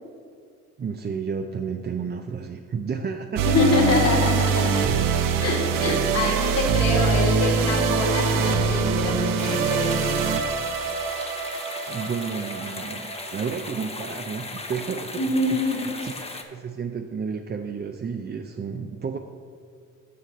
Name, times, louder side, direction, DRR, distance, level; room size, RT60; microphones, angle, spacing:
voice 1, 0.8-3.6 11.9-15.3 15.7-19.2, right 6 dB, 30° right, 5 dB, 0.5 m, -32 dB
voice 2, 3.4-4.9 5.4-10.0 15.2-15.9, left 2 dB, 50° left, -2 dB, 1.7 m, -25 dB
sound 1, 3.4-13.7, right 5 dB, 75° right, 0.7 m, -24 dB
sound 2, 9.4-16.4, left 3 dB, 20° left, 0.8 m, -37 dB
6.6 x 5.9 x 5.3 m, 2.2 s
supercardioid pair, 65°, 33 cm